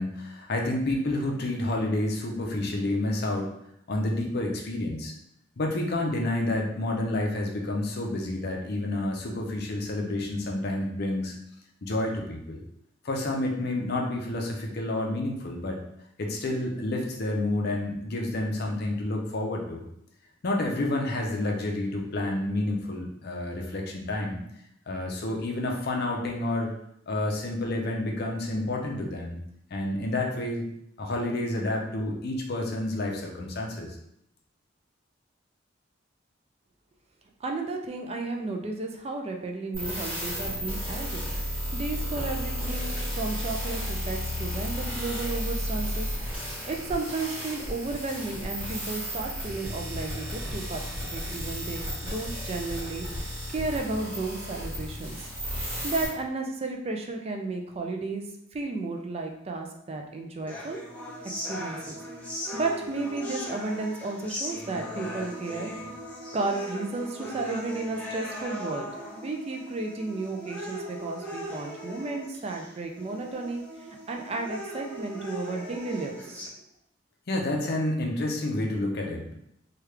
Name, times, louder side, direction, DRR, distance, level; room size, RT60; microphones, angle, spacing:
voice 1, 0.0-3.5 3.9-5.1 5.6-11.3 11.8-12.6 13.0-15.8 16.2-19.8 20.4-24.4 24.9-26.7 27.1-29.4 29.7-30.6 31.0-34.0 77.3-79.3, left 1 dB, 55° left, 1 dB, 0.6 m, -29 dB
voice 2, 37.4-41.2 41.5-46.1 46.6-55.3 55.8-58.3 58.5-60.8 61.2-62.0 62.5-65.7 66.3-68.9 69.2-76.5, right 3 dB, 30° right, 3 dB, 0.3 m, -33 dB
sound 1, 39.7-56.1, equal, 10° right, 1.5 m, -33 dB
sound 2, 60.5-76.5, equal, 5° left, 0.6 m, -39 dB
3.1 x 2.3 x 3.2 m, 0.76 s
head